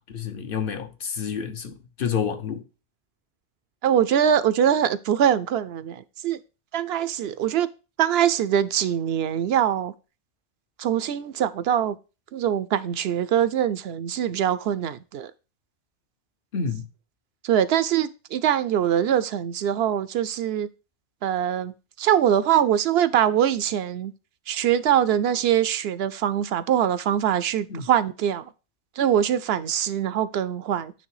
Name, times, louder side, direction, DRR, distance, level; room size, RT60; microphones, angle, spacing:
voice 1, 0.1-2.6 16.5-16.9 27.7-27.9, left 6 dB, 55° left, 1.0 m, -29 dB
voice 2, 3.8-6.4 6.7-7.7 8.0-9.9 10.8-12.0 12.3-15.3 17.4-20.7 21.2-24.1 24.5-28.5 29.0-30.9, right 10 dB, 70° right, 0.8 m, -23 dB
9.2 x 3.3 x 4.7 m
omnidirectional pair, 1.1 m